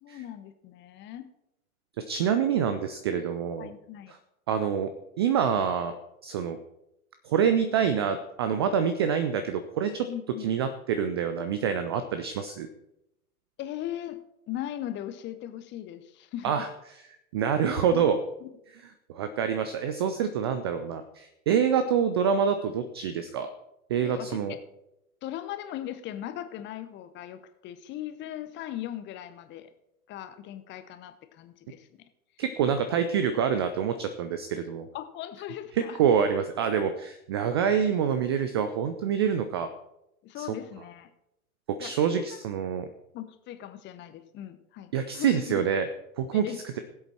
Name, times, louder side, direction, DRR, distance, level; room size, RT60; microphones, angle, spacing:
voice 1, 0.0-1.3 3.6-4.1 10.1-10.5 13.6-14.2 14.5-16.5 17.8-18.0 18.4-18.5 23.9-24.6 25.2-29.7 30.1-31.9 34.9-36.0 40.2-41.1 41.8-42.4 43.1-45.6 46.3-46.6, left 12 dB, 25° left, 10 dB, 0.9 m, -39 dB
voice 2, 2.1-3.7 4.5-4.9 5.2-5.9 6.2-6.6 7.2-10.1 10.4-12.7 16.4-16.7 17.3-18.2 19.1-23.5 23.9-24.5 32.4-34.9 35.7-39.7 40.4-40.5 41.7-42.9 44.9-45.9 46.2-46.5, right 7 dB, 20° right, 9 dB, 0.3 m, -26 dB
17.5 x 7.9 x 4.4 m, 0.86 s
figure-of-eight pair, 100°, 44 cm